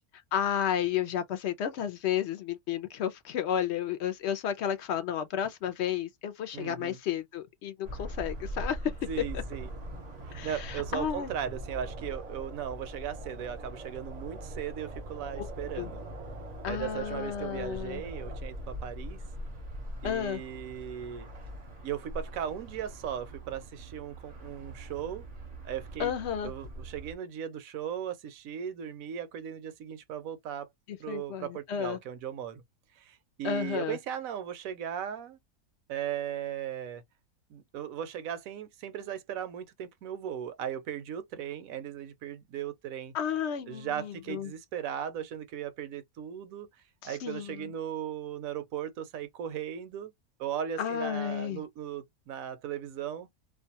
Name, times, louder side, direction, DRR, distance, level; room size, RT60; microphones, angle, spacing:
voice 1, 0.3-8.8 9.3-9.4 10.3-11.3 15.4-15.5 15.8-15.9 16.6-18.0 20.0-20.4 26.0-26.5 30.9-32.0 33.4-34.0 43.1-44.5 47.0-47.7 50.8-51.6, left 9 dB, 65° left, 0.7 m, -32 dB
voice 2, 6.5-7.0 9.1-9.7 10.2-16.0 16.7-19.2 20.0-21.3 21.8-25.3 25.6-26.1 26.4-30.7 31.0-32.6 33.0-35.4 35.9-37.0 37.5-43.1 43.7-46.7 47.0-50.1 50.4-53.3, right 9 dB, 75° right, 1.0 m, -37 dB
sound 1, 7.8-27.1, right 1 dB, 40° right, 0.6 m, -42 dB
2.5 x 2.2 x 2.7 m
omnidirectional pair, 1.6 m